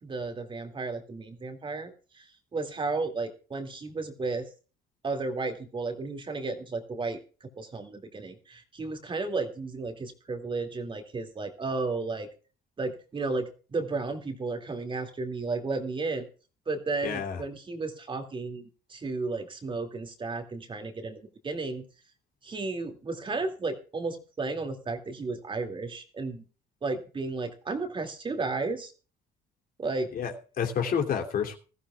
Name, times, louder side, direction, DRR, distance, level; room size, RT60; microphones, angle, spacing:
voice 1, 0.0-2.2 2.5-4.5 5.0-7.2 7.6-12.3 12.8-16.3 16.7-18.6 18.9-21.9 22.4-26.4 26.8-28.9 29.8-30.1, right 3 dB, 30° right, 6 dB, 2.4 m, -33 dB
voice 2, 17.0-17.4 30.1-31.6, left 7 dB, 55° left, 2 dB, 2.9 m, -29 dB
20.0 x 14.0 x 2.4 m, 0.36 s
cardioid pair, 110°, 17 cm